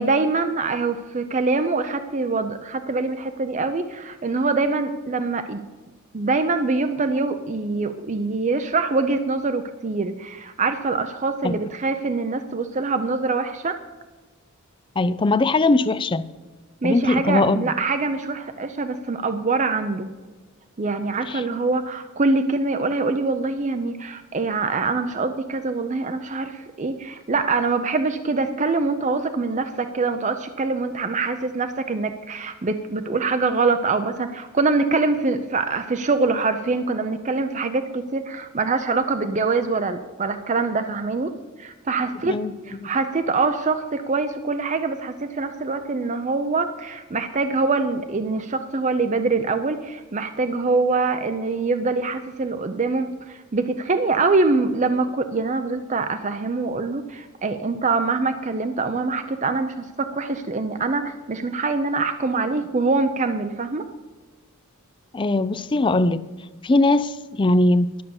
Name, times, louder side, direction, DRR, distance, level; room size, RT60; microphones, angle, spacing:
voice 1, 0.0-5.6 6.1-13.8 16.8-20.1 20.8-41.3 41.6-63.9, right 3 dB, 35° right, 8 dB, 0.5 m, -24 dB
voice 2, 15.0-16.3 16.8-17.7 21.3-21.4 42.2-42.5 65.1-66.2 66.6-67.9, left 2 dB, 20° left, 15 dB, 0.4 m, -20 dB
12.0 x 6.9 x 7.0 m, 1.3 s
head